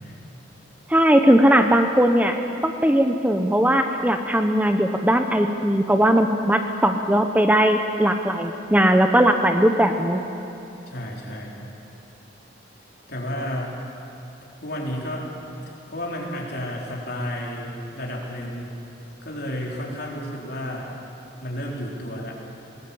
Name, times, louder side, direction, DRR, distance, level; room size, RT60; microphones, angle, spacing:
voice 1, 0.9-2.4 2.6-10.2, right 1 dB, 10° right, 6 dB, 0.8 m, -19 dB
voice 2, 10.9-11.6 13.1-13.7 14.6-15.5 15.9-18.7 19.2-20.9 21.4-22.4, equal, 55° left, -2 dB, 4.2 m, -31 dB
20.5 x 19.5 x 8.7 m, 2.9 s
head